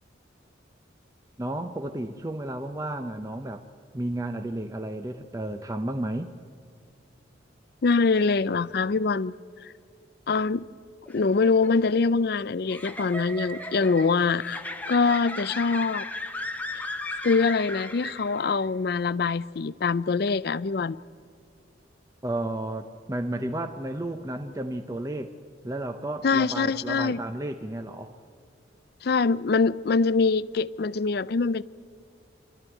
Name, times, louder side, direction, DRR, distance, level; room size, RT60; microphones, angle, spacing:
voice 1, 1.4-3.6 3.9-6.3 22.2-25.4 25.6-28.2, right 1 dB, 15° right, 0.6 m, -32 dB
voice 2, 7.8-9.3 9.6-9.7 10.3-10.7 11.1-14.6 14.9-16.1 17.2-21.0 26.2-27.2 29.0-31.6, left 4 dB, 55° left, 0.4 m, -24 dB
sound 1, 11.1-18.7, left 1 dB, 10° left, 0.9 m, -37 dB
27.0 x 12.5 x 9.1 m
head